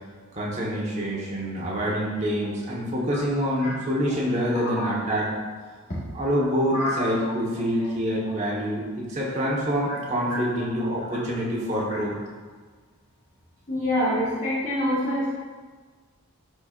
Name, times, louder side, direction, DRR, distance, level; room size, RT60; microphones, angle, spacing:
voice 1, 0.3-5.3 6.1-12.1, equal, 30° right, -5 dB, 1.4 m, -26 dB
voice 2, 13.7-15.3, left 1 dB, 35° left, -11 dB, 1.7 m, -26 dB
11.5 x 4.6 x 2.6 m, 1.5 s
head